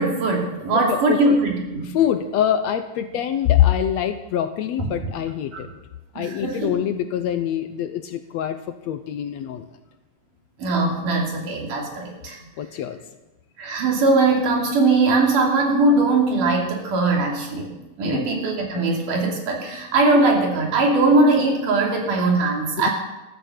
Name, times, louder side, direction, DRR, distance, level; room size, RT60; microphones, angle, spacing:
voice 1, 0.0-1.9 5.5-5.6 6.2-6.7 10.6-12.4 13.6-22.9, right 3 dB, 85° right, 0 dB, 4.3 m, -20 dB
voice 2, 0.7-1.4 1.8-5.7 6.2-9.7 12.6-13.0 18.0-18.3 22.8-22.9, left 10 dB, 70° left, 9 dB, 1.8 m, -24 dB
13.5 x 13.5 x 6.6 m, 1.0 s
omnidirectional pair, 3.6 m